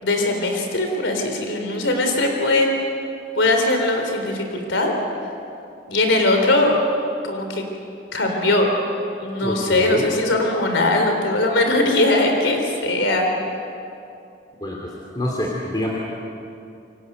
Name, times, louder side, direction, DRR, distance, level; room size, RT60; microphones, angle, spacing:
voice 1, 0.0-2.7 3.4-4.9 5.9-6.8 7.2-7.6 8.1-8.8 9.2-13.3, left 2 dB, 85° left, 3 dB, 3.7 m, -20 dB
voice 2, 9.4-10.1 14.6-14.8 15.1-15.9, left 1 dB, 20° left, -2 dB, 3.2 m, -25 dB
28.0 x 23.5 x 8.1 m, 2.7 s
head